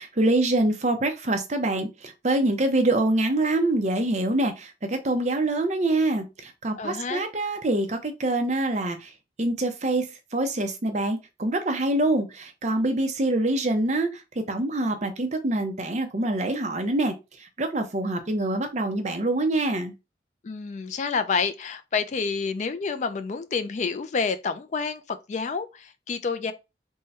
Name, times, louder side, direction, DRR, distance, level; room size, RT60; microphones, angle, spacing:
voice 1, 0.0-9.1 9.4-10.0 10.3-14.2 14.5-17.1 17.6-19.9, right 2 dB, 40° right, 0.7 m, -25 dB
voice 2, 6.8-7.3 20.4-26.5, left 5 dB, 40° left, 0.3 m, -29 dB
3.6 x 2.1 x 4.1 m
head